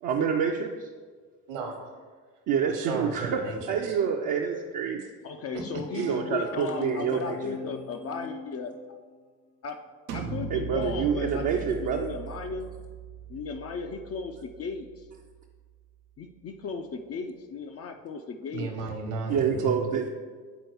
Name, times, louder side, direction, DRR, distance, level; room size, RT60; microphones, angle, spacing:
voice 1, 0.0-0.9 2.5-5.0 5.9-7.4 10.5-12.1 19.3-20.1, right 7 dB, 45° right, 1 dB, 0.6 m, -27 dB
voice 2, 1.5-1.9 2.7-3.9 5.7-6.1 18.5-19.9, right 3 dB, 60° right, 3 dB, 1.1 m, -35 dB
voice 3, 5.2-8.7 9.6-9.8 10.1-12.7 13.3-15.1 16.2-18.7, left 4 dB, 30° left, 5 dB, 0.5 m, -36 dB
sound 1, 5.5-9.2, left 5 dB, 55° left, 0.9 m, -41 dB
sound 2, 10.1-15.7, right 6 dB, 80° right, 0.6 m, -39 dB
7.9 x 4.3 x 3.1 m, 1.5 s
figure-of-eight pair, 50°, 47 cm